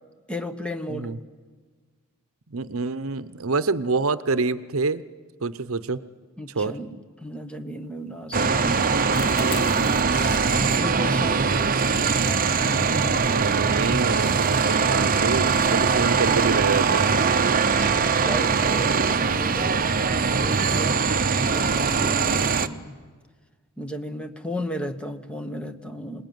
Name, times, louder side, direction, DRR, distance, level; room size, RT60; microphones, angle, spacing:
voice 1, 0.3-1.1 6.4-9.2 10.3-11.5 12.6-13.7 17.6-20.9 21.5-23.0 23.8-26.2, equal, 5° left, 7 dB, 1.2 m, -34 dB
voice 2, 2.5-5.0 5.4-6.0 6.5-6.7 12.7-17.1, right 4 dB, 75° right, 14 dB, 0.8 m, -27 dB
sound 1, 8.3-22.7, right 5 dB, 40° right, 0.8 m, -22 dB
sound 2, 8.7-10.6 13.2-13.4 14.0-14.7, left 4 dB, 50° left, 0.9 m, -37 dB
26.5 x 20.5 x 9.4 m, 1.4 s
head